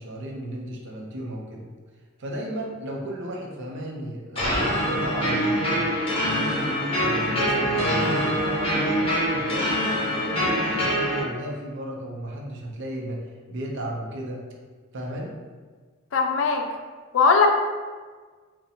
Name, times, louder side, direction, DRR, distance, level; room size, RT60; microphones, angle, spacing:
voice 1, 0.0-1.6 2.2-5.8 6.2-9.7 10.0-14.4 14.9-15.3, right 1 dB, 60° right, 0 dB, 0.6 m, -34 dB
sound 1, 4.4-11.2, equal, 30° left, 0.8 m, -24 dB
voice 2, 16.1-16.6 17.1-17.5, left 5 dB, 70° left, 4 dB, 0.4 m, -19 dB
4.0 x 2.1 x 2.6 m, 1.5 s
head